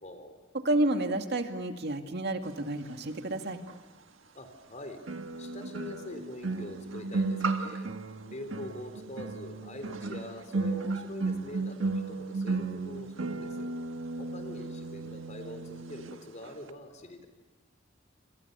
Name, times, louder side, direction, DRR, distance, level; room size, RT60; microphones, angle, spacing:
voice 1, 0.0-0.4 4.3-5.0 5.4-7.9 8.2-13.7 14.2-17.3, left 1 dB, 40° left, 7 dB, 3.9 m, -44 dB
voice 2, 0.5-3.6, right 1 dB, 60° right, 5 dB, 2.1 m, -30 dB
sound 1, 3.7-3.8 5.1-16.2 16.4-16.7, right 3 dB, 90° right, 1.5 m, -34 dB
28.0 x 27.0 x 6.9 m, 1.3 s
head